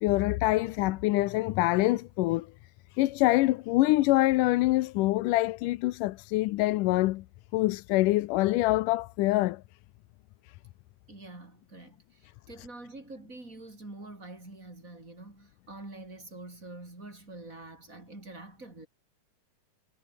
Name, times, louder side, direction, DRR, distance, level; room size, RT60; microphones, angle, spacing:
voice 1, 0.0-2.5 2.9-7.2 7.5-9.6, left 18 dB, 90° left, 2.3 m, -25 dB
voice 2, 11.1-18.9, right 2 dB, 25° right, 5.9 m, -46 dB
omnidirectional pair, 3.6 m